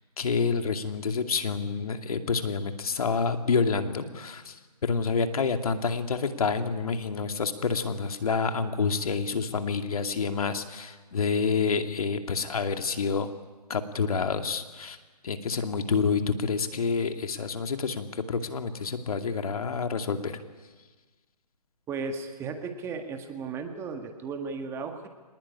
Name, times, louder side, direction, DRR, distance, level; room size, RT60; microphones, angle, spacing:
voice 1, 0.2-4.6 4.8-13.3 13.7-15.0 15.2-20.4, left 5 dB, 60° left, 7 dB, 2.5 m, -28 dB
voice 2, 21.9-25.1, right 4 dB, 10° right, 6 dB, 1.7 m, -35 dB
25.0 x 20.0 x 9.9 m, 1.3 s
figure-of-eight pair, 145°, 21 cm